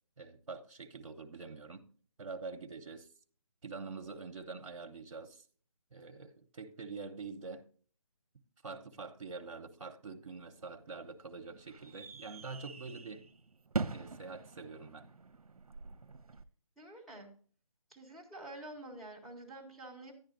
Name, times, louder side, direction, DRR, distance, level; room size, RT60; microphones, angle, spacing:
voice 1, 0.2-1.9 2.2-3.1 3.6-5.4 5.9-7.7 8.6-13.3 13.9-15.1, right 4 dB, 55° right, 1.0 m, -45 dB
sound 1, 10.4-16.4, right 4 dB, 75° right, 0.7 m, -43 dB
voice 2, 16.8-17.3 17.9-20.1, right 1 dB, ahead, 1.4 m, -48 dB
11.0 x 10.5 x 2.6 m
figure-of-eight pair, 155°, 19 cm